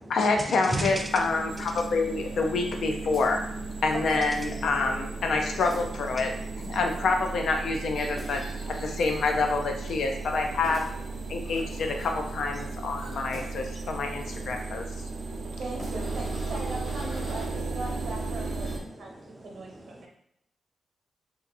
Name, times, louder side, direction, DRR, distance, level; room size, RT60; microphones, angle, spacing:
voice 1, 0.1-3.4 3.8-8.4 8.7-10.9 11.3-14.8, left 3 dB, 70° left, 3 dB, 0.5 m, -27 dB
sound 1, 0.6-18.8, right 3 dB, 80° right, 0.6 m, -36 dB
sound 2, 1.5-1.9 3.1-3.6 4.0-4.5 4.8-4.9 5.6-6.1 6.6-7.1 8.1-8.6 8.9-9.5 10.6-11.0 11.6-12.3 13.3-13.7 14.2-14.7 15.8-16.3 16.6-16.7, left 1 dB, 25° left, 0.8 m, -46 dB
voice 2, 3.9-4.3 15.6-19.2 19.4-20.1, right 2 dB, 65° right, -1 dB, 1.0 m, -39 dB
sound 3, 7.5-9.5 11.4-12.1 13.0-14.4 14.6-14.9 15.7-17.5 18.5-18.7, left 1 dB, 50° left, 1.2 m, -47 dB
voice 3, 14.5-15.5 18.9-19.5 20.0-20.1, right 1 dB, 15° right, 2 dB, 0.4 m, -37 dB
2.8 x 2.5 x 4.0 m, 0.73 s
wide cardioid pair, 150°, 0 cm